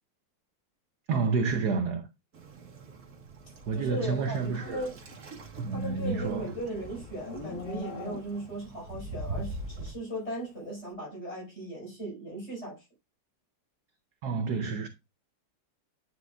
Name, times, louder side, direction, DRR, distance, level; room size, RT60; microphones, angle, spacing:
voice 1, 1.1-2.1 3.7-4.8 5.6-6.5 14.2-14.9, right 4 dB, 65° right, 1.1 m, -29 dB
Waves surf, 2.3-9.9, right 2 dB, 45° right, 1.9 m, -43 dB
voice 2, 3.7-5.0 5.7-12.9, right 1 dB, 30° left, 5.4 m, -37 dB
Livestock farm animals working animals, 5.4-8.7, left 4 dB, 60° left, 0.8 m, -43 dB
10.0 x 5.4 x 2.4 m
omnidirectional pair, 2.3 m